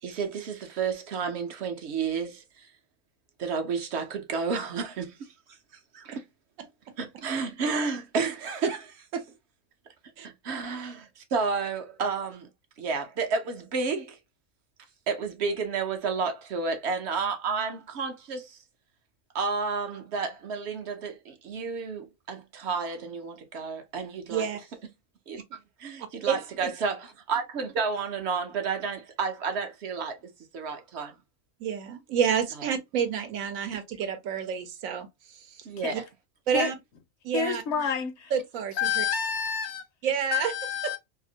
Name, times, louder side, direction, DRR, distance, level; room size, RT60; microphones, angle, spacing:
voice 1, 0.0-2.7 3.4-5.3 5.9-6.2 7.0-9.3 10.2-12.5 12.8-14.2 15.1-18.6 19.3-24.5 25.3-25.4 25.8-30.2 30.5-31.2 32.6-32.7 35.7-36.0, right 5 dB, 60° right, 0.8 m, -31 dB
voice 2, 26.3-26.7 31.6-35.1 35.9-36.0 36.5-36.7 37.2-37.6 38.3-39.0 40.0-40.5 40.8-40.9, right 7 dB, 85° right, 1.1 m, -29 dB
voice 3, 37.3-38.3 38.8-39.8 40.3-41.0, left 7 dB, 65° left, 0.8 m, -29 dB
2.8 x 2.5 x 2.7 m
omnidirectional pair, 1.4 m